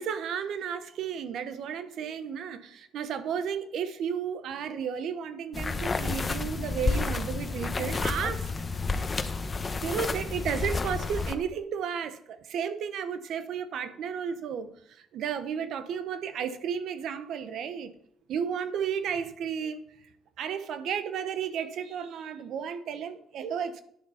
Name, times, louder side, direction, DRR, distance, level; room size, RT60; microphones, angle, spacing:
voice 1, 0.0-8.5 9.8-17.9 18.3-19.8 20.4-23.8, right 7 dB, 75° right, 1.0 m, -33 dB
sound 1, 5.5-11.3, left 3 dB, 30° left, 1.0 m, -30 dB
10.5 x 7.0 x 5.6 m
cardioid pair, 90°, 0 cm